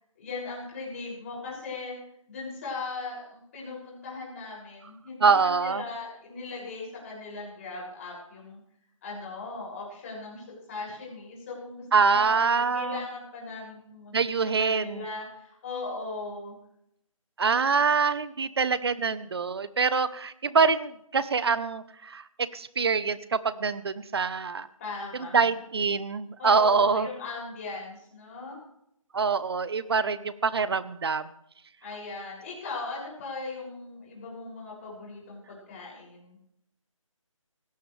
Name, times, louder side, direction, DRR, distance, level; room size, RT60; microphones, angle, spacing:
voice 1, 0.2-1.9 2.3-8.6 9.0-14.2 14.6-16.5 24.8-25.5 26.4-28.6 31.8-36.4, left 3 dB, 25° left, -3 dB, 6.8 m, -38 dB
voice 2, 5.2-5.8 11.9-13.0 14.1-15.0 17.4-22.2 22.5-24.7 25.1-27.1 29.1-31.2, right 5 dB, 50° right, 15 dB, 1.0 m, -25 dB
20.0 x 17.0 x 3.4 m, 0.76 s
figure-of-eight pair, 165°, 17 cm